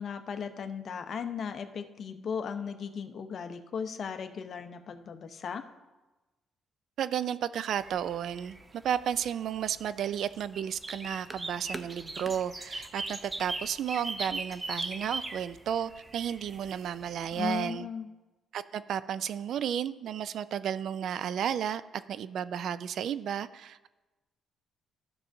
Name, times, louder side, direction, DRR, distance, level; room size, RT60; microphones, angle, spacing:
voice 1, 0.0-5.6 17.3-18.1, left 6 dB, 55° left, 8 dB, 0.7 m, -36 dB
voice 2, 7.0-8.6 8.8-17.9 18.5-21.8 22.1-23.9, right 9 dB, 70° right, 15 dB, 0.3 m, -33 dB
sound 1, 7.8-17.6, right 2 dB, 25° right, 0.6 m, -40 dB
13.5 x 6.2 x 2.6 m, 1.1 s
cardioid pair, 90°, 0 cm